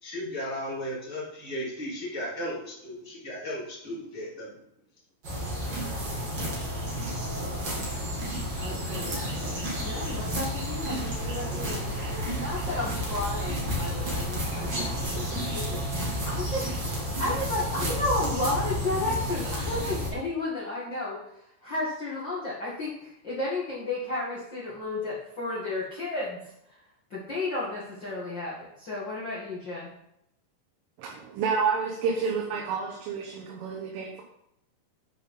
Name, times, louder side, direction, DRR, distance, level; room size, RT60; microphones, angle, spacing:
voice 1, 0.0-4.6, equal, 5° right, -7 dB, 1.4 m, -35 dB
sound 1, 5.2-20.1, equal, 40° right, 1.5 m, -31 dB
voice 2, 8.5-21.2 21.6-26.8 27.1-29.9, left 2 dB, 75° left, -8 dB, 1.0 m, -33 dB
voice 3, 31.0-34.2, right 5 dB, 85° right, -1 dB, 3.7 m, -29 dB
9.1 x 5.4 x 5.5 m, 0.79 s
omnidirectional pair, 5.6 m